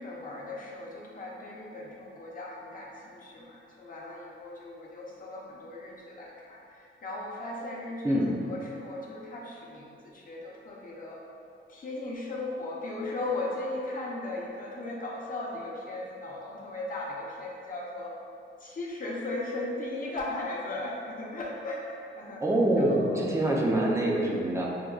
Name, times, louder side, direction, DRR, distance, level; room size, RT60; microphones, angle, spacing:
voice 1, 0.0-11.2 11.7-18.1 18.6-22.4 22.8-23.2, left 2 dB, 40° left, -4 dB, 0.6 m, -37 dB
voice 2, 22.4-24.6, right 1 dB, 15° right, -2 dB, 0.4 m, -25 dB
5.9 x 2.2 x 2.3 m, 2.5 s
wide cardioid pair, 160°, 21 cm